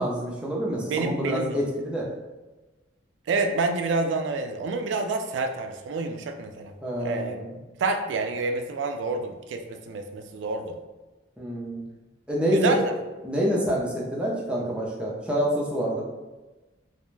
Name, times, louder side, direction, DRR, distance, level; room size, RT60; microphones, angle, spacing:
voice 1, 0.0-2.1 6.8-7.5 11.4-11.8 12.3-12.8 13.2-16.0, equal, 5° right, -5 dB, 0.5 m, -27 dB
voice 2, 0.9-1.6 3.3-6.7 7.0-7.4 7.8-10.8 12.5-12.9, right 3 dB, 75° right, 6 dB, 0.3 m, -28 dB
2.4 x 2.1 x 3.1 m, 1.1 s
head